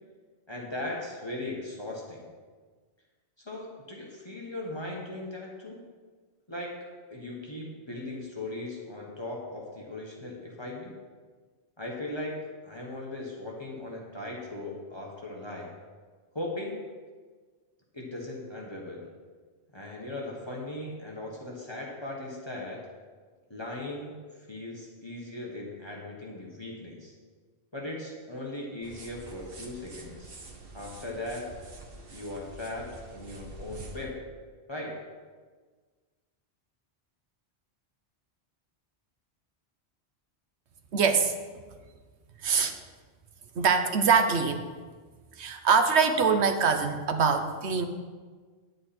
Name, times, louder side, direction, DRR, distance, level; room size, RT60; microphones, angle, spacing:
voice 1, 0.5-2.2 3.4-5.8 6.5-6.7 7.1-10.9 11.8-12.4 12.6-15.7 16.3-16.8 17.9-19.1 19.7-22.8 23.5-27.1 27.7-30.4 30.7-31.5 32.1-34.1 34.7-35.0, left 2 dB, 25° left, -3 dB, 1.5 m, -38 dB
sound 1, 28.8-34.1, right 2 dB, 60° right, 1.3 m, -46 dB
voice 2, 40.9-41.3 42.4-42.8 43.6-44.7 45.4-47.9, right 5 dB, 80° right, 7 dB, 1.1 m, -24 dB
10.0 x 8.5 x 4.3 m, 1.5 s
omnidirectional pair, 1.1 m